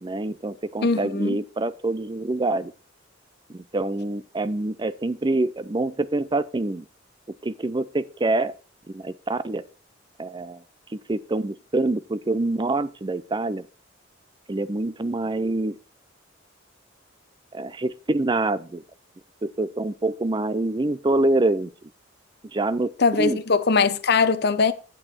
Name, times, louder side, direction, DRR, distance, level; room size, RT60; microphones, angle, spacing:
voice 1, 0.0-2.7 3.5-6.8 7.4-8.5 8.9-9.6 10.2-10.6 11.1-13.6 14.5-15.8 17.5-18.8 19.4-21.7 22.5-22.9 23.2-23.4, right 2 dB, 25° right, 0.5 m, -25 dB
voice 2, 0.8-1.4 23.0-24.7, left 4 dB, 60° left, 0.8 m, -21 dB
8.8 x 8.7 x 4.4 m
head